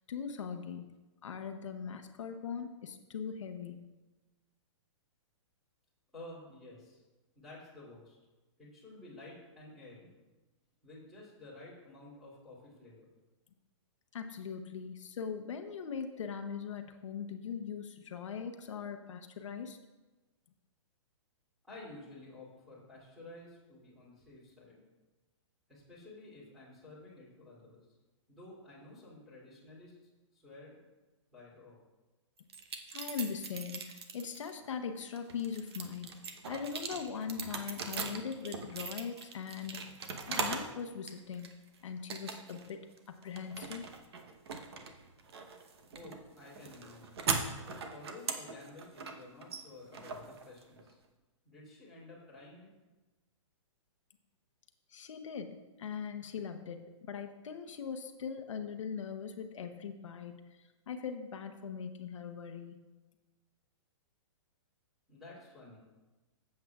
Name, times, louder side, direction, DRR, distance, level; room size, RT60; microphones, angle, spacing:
voice 1, 0.1-0.9 1.2-3.9 14.1-19.8 32.9-40.0 40.3-43.9 54.9-62.8, left 6 dB, 75° left, 6 dB, 0.8 m, -41 dB
voice 2, 6.1-7.0 7.3-8.2 8.6-10.1 10.8-13.0 21.6-24.8 25.7-27.9 28.3-30.0 30.3-30.8 31.3-31.8 45.9-47.3 47.7-51.0 51.4-52.7 65.1-65.8, left 2 dB, ahead, -9 dB, 2.7 m, -52 dB
sound 1, 32.5-34.5 35.0-40.7 41.1-41.7 42.1-42.7 43.0-50.9, right 5 dB, 55° right, 1.0 m, -40 dB
14.5 x 7.7 x 2.4 m, 1.2 s
hypercardioid pair, 175°, 16 cm